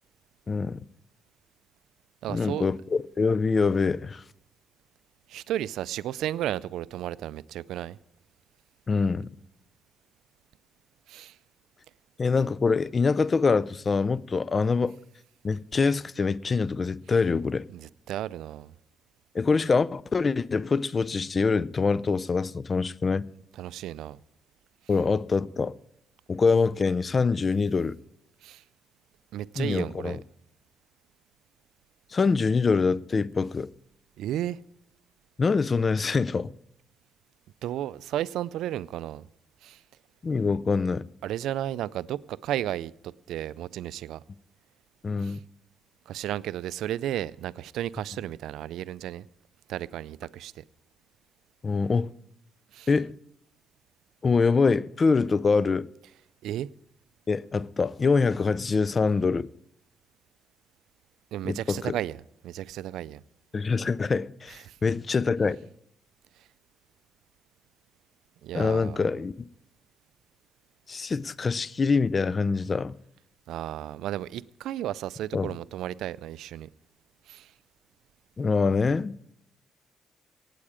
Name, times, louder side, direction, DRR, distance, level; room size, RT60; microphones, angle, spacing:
voice 1, 0.5-0.8 2.3-4.2 8.9-9.3 12.2-15.0 15.4-17.7 19.3-23.3 24.9-25.7 26.3-28.0 29.6-30.2 32.1-33.7 35.4-36.5 40.2-41.1 45.0-45.4 51.6-52.1 52.9-53.1 54.2-55.9 57.3-59.5 61.4-61.9 63.5-65.6 68.5-69.3 70.9-73.0 75.3-75.5 78.4-79.1, left 4 dB, 35° left, 0.4 m, -25 dB
voice 2, 2.2-2.7 5.3-8.0 11.1-11.4 17.7-18.7 23.6-24.2 28.4-28.6 29.3-30.2 34.2-34.6 37.6-39.3 39.6-39.8 41.2-44.2 45.2-45.4 46.1-49.3 49.7-50.6 52.7-52.9 56.4-56.7 61.3-62.2 62.4-63.2 64.7-64.8 68.4-69.0 73.5-76.7 77.3-77.5, right 12 dB, 85° right, 0.4 m, -33 dB
17.5 x 8.5 x 4.9 m
cardioid pair, 90°, 0 cm